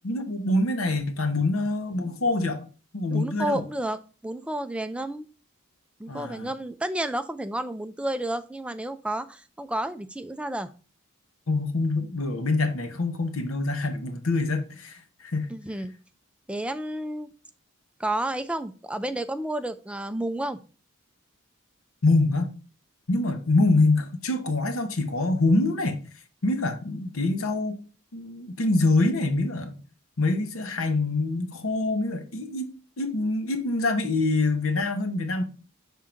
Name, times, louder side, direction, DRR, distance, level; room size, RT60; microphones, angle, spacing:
voice 1, 0.0-2.6 2.9-3.6 6.1-6.5 11.5-15.5 22.0-22.5 23.1-26.0 26.4-27.8 28.1-29.8 30.2-35.4, left 2 dB, 75° left, 0.9 m, -25 dB
voice 2, 3.1-5.3 6.0-10.7 15.5-15.9 16.5-17.3 18.0-20.6, right 1 dB, 5° right, 0.3 m, -31 dB
5.8 x 3.7 x 4.9 m
head